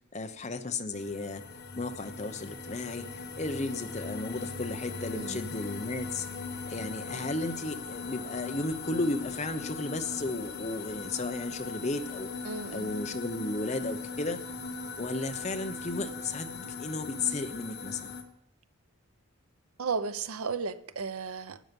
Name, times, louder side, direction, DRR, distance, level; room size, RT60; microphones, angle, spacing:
voice 1, 0.1-1.4 1.8-3.0 3.4-6.3 6.7-12.3 12.7-14.4 15.0-18.1, left 2 dB, 30° left, 0.9 m, -34 dB
sound 1, 0.9-18.2, left 4 dB, 45° left, 1.3 m, -39 dB
voice 2, 5.1-5.4 12.4-12.9 19.8-21.6, right 5 dB, 90° right, 0.7 m, -34 dB
12.5 x 9.3 x 5.4 m
head